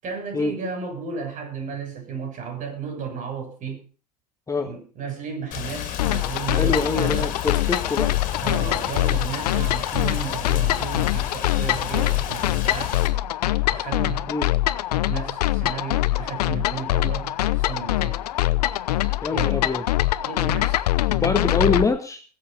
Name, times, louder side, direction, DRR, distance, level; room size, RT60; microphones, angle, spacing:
voice 1, 0.0-3.8 4.6-7.4 8.4-13.0 13.7-14.3 15.0-18.2 19.3-19.7 20.2-20.8, right 6 dB, 40° right, 7.1 m, -33 dB
Rain, 5.5-13.1, left 10 dB, 40° left, 3.3 m, -33 dB
sound 1, 6.0-21.8, left 15 dB, 70° left, 0.9 m, -23 dB
voice 2, 6.5-8.1 14.3-14.5 19.2-19.8 21.1-22.2, left 4 dB, 15° left, 1.6 m, -24 dB
21.5 x 7.6 x 5.3 m
hypercardioid pair, 90°, 21 cm